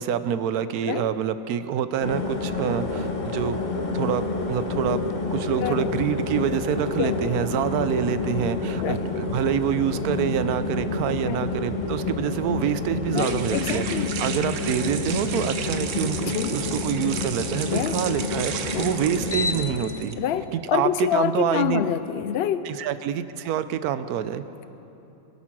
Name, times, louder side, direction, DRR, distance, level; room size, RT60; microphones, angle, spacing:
voice 1, 0.0-3.6 3.9-5.0 5.3-20.2 20.5-21.8 22.6-24.4, right 9 dB, 80° right, 12 dB, 1.1 m, -26 dB
sound 1, 2.0-19.8, left 3 dB, 35° left, 1.1 m, -29 dB
voice 2, 5.6-5.9 7.0-7.3 8.8-9.1 11.2-11.5 13.2-14.1 16.3-16.5 17.7-18.0 18.7-18.9 20.2-22.7, left 10 dB, 70° left, 12 dB, 0.6 m, -27 dB
sound 2, 11.5-20.1, right 7 dB, 60° right, 1.1 m, -35 dB
23.0 x 8.5 x 6.0 m, 3.0 s
omnidirectional pair, 1.6 m